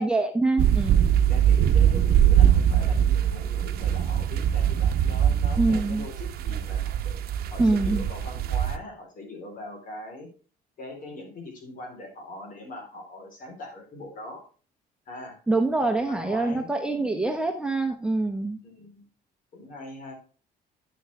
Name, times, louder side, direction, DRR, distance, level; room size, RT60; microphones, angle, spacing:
voice 1, 0.0-1.1 5.6-6.0 7.6-8.1 15.5-18.6, right 2 dB, 5° right, 3 dB, 1.2 m, -25 dB
sound 1, 0.6-8.8, right 9 dB, 65° right, 0.9 m, -22 dB
voice 2, 1.3-7.2 7.5-10.3 10.8-14.4 15.1-15.4 16.0-17.4 18.6-19.0 19.5-20.1, left 2 dB, 55° left, 2 dB, 3.8 m, -41 dB
9.9 x 6.4 x 3.3 m, 0.38 s
cardioid pair, 110°, 17 cm